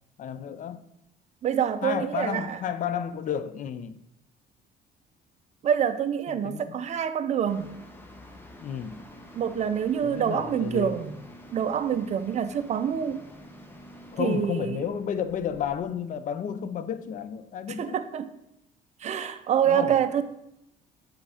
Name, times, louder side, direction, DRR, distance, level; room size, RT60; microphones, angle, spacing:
voice 1, 0.2-0.8 1.8-4.0 6.3-6.6 8.6-9.0 10.0-11.0 14.1-18.0 19.6-20.0, left 8 dB, 50° left, 0.6 m, -32 dB
voice 2, 1.4-2.6 5.6-7.7 9.3-11.1 11.5-13.2 14.2-14.8 17.8-18.3 19.0-20.2, right 8 dB, 45° right, 0.6 m, -26 dB
sound 1, 7.4-15.8, equal, 15° left, 1.1 m, -49 dB
7.5 x 3.8 x 4.9 m
cardioid pair, 110°, 17 cm